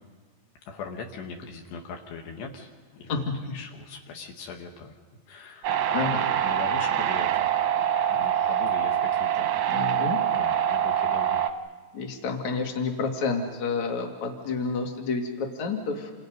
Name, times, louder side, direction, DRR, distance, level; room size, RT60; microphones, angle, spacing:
voice 1, 0.7-3.2 3.5-5.0 5.3-7.5 8.1-9.5 10.3-11.4, left 5 dB, 70° left, 2 dB, 3.6 m, -40 dB
sound 1, 5.6-11.5, right 10 dB, 70° right, 1.9 m, -25 dB
voice 2, 5.9-6.2 8.4-8.5 9.7-10.2 11.9-16.1, left 4 dB, 45° left, 2 dB, 3.2 m, -29 dB
29.0 x 29.0 x 5.3 m, 1.3 s
omnidirectional pair, 5.1 m